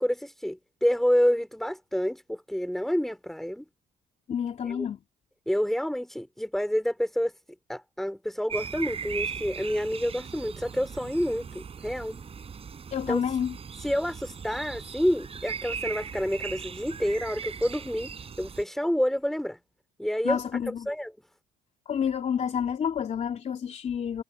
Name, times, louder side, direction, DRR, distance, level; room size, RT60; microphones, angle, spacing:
voice 1, 0.0-3.6 4.6-4.9 5.5-7.3 7.7-12.2 13.1-13.2 13.8-18.1 18.4-19.6 20.0-20.4 20.7-21.1, equal, ahead, 4.3 m, -28 dB
voice 2, 4.3-5.0 12.9-13.6 20.2-20.9 21.8-24.2, left 8 dB, 40° left, 3.1 m, -29 dB
sound 1, 8.5-18.6, right 6 dB, 35° right, 6.9 m, -38 dB
cardioid pair, 110°, 17 cm